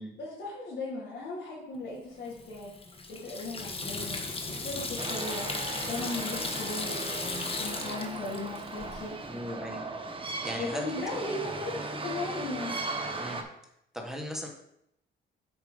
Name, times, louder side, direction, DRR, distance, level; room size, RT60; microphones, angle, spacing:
voice 1, 0.2-2.7 3.1-4.2 4.5-5.5 5.8-9.2 10.6-12.8, left 2 dB, 65° left, -8 dB, 3.2 m, -37 dB
Water tap faucet / Sink (filling or washing), 2.2-9.0, left 3 dB, 30° left, 1.3 m, -36 dB
sound 1, 5.0-13.4, right 3 dB, 25° right, 1.2 m, -37 dB
voice 2, 9.3-9.8 10.4-11.4 13.2-13.4 13.9-14.5, equal, ahead, 1 dB, 1.6 m, -38 dB
7.2 x 5.2 x 5.3 m, 0.78 s
cardioid pair, 90°, 20 cm